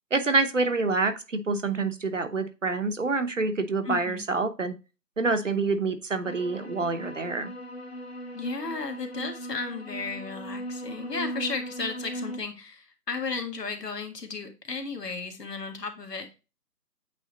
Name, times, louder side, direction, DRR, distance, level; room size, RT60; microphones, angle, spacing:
voice 1, 0.1-4.7 5.2-7.5, right 3 dB, 50° right, 9 dB, 0.8 m, -27 dB
voice 2, 3.8-4.3 8.3-16.3, left 4 dB, 75° left, 5 dB, 1.8 m, -34 dB
sound 1, 6.2-12.4, right 1 dB, 40° left, 1.0 m, -38 dB
8.4 x 3.3 x 4.0 m, 0.29 s
figure-of-eight pair, 170°, 49 cm